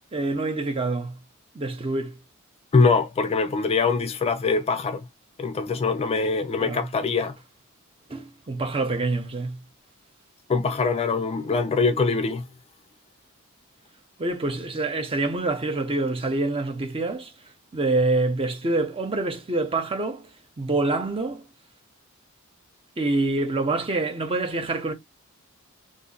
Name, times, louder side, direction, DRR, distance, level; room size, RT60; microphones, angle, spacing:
voice 1, 0.1-1.2 1.5-2.1 6.6-6.9 8.1-9.6 14.2-17.3 17.7-20.3 20.6-21.4 23.0-24.9, right 2 dB, 25° right, 0.6 m, -26 dB
voice 2, 2.7-5.1 5.4-7.4 10.5-12.5, left 4 dB, 30° left, 0.3 m, -23 dB
2.6 x 2.5 x 3.8 m
head